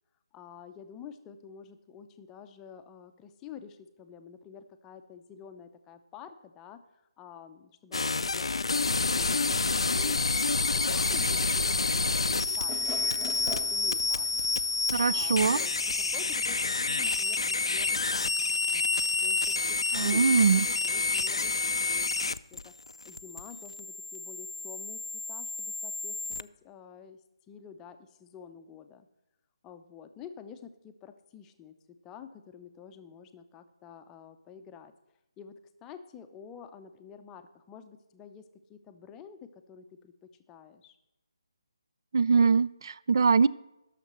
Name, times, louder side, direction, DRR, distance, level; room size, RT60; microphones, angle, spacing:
voice 1, 0.3-8.5 8.8-9.5 9.9-14.6 15.1-15.7 16.1-18.3 19.2-22.1 22.5-22.7 23.0-25.0 25.3-27.2 27.5-29.1 29.6-34.9 35.4-38.4 38.7-41.0, left 7 dB, 15° left, 8 dB, 0.6 m, -49 dB
sound 1, 7.9-26.4, left 3 dB, 80° left, 0.4 m, -29 dB
sound 2, 12.6-19.1, left 1 dB, ahead, 1.4 m, -48 dB
voice 2, 14.9-15.6 19.9-20.7 42.1-43.5, right 5 dB, 55° right, 19 dB, 0.4 m, -23 dB
12.0 x 6.6 x 6.6 m, 0.93 s
figure-of-eight pair, 155°, 3 cm